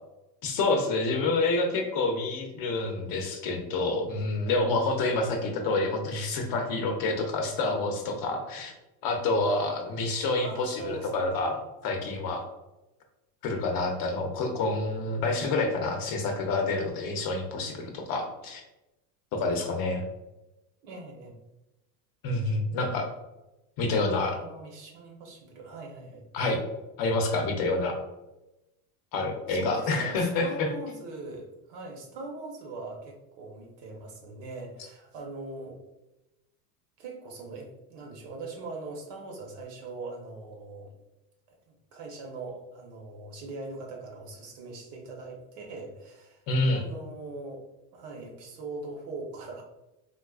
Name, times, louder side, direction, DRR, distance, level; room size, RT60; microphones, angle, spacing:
voice 1, 0.4-8.7 9.0-11.5 11.8-12.4 13.4-18.6 19.3-20.0 22.2-23.1 23.8-24.3 26.3-26.6 27.0-28.0 29.1-30.7 46.5-46.8, left 2 dB, 45° left, 3 dB, 0.7 m, -28 dB
voice 2, 9.4-9.9 10.4-11.1 11.5-11.6 20.8-21.3 24.2-26.2 29.5-35.8 37.0-40.9 41.5-47.6 47.9-49.6, right 3 dB, 60° right, 1 dB, 1.1 m, -41 dB
3.8 x 2.4 x 2.3 m, 0.96 s
supercardioid pair, 110°, 49 cm